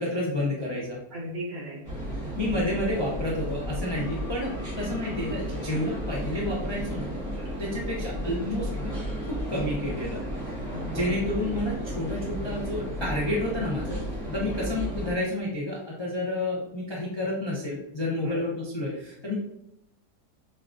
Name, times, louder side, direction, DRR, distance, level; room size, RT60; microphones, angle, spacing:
voice 1, 0.0-1.0 2.4-7.1 7.6-10.2 10.9-14.0 14.3-19.3, left 1 dB, 40° left, -5 dB, 0.4 m, -30 dB
voice 2, 1.1-1.9 4.0-4.3 7.4-7.6 10.2-10.3 10.7-11.2 14.1-14.2 18.1-18.4 18.9-19.0, equal, 75° right, -7 dB, 2.4 m, -38 dB
sound 1, 1.8-15.2, equal, 15° right, 0.8 m, -33 dB
6.7 x 2.4 x 2.5 m, 0.80 s
omnidirectional pair, 1.8 m